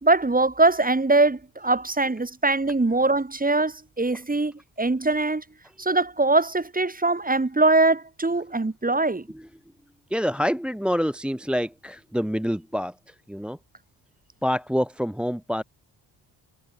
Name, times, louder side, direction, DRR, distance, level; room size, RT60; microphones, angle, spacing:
voice 1, 0.0-5.4 5.8-9.3, right 2 dB, 20° right, 3.1 m, -22 dB
voice 2, 10.1-13.6 14.4-15.6, equal, ahead, 1.3 m, -27 dB
supercardioid pair, 60°, 44 cm